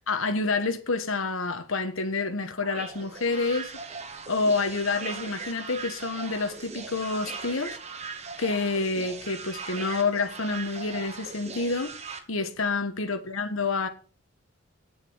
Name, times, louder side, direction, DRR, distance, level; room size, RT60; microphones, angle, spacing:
voice 1, 0.1-3.7 4.3-7.8 8.4-11.9 12.3-13.9, left 3 dB, 75° left, 1.3 m, -28 dB
sound 1, 2.6-12.2, right 5 dB, 30° right, 1.1 m, -39 dB
9.3 x 7.8 x 6.2 m
head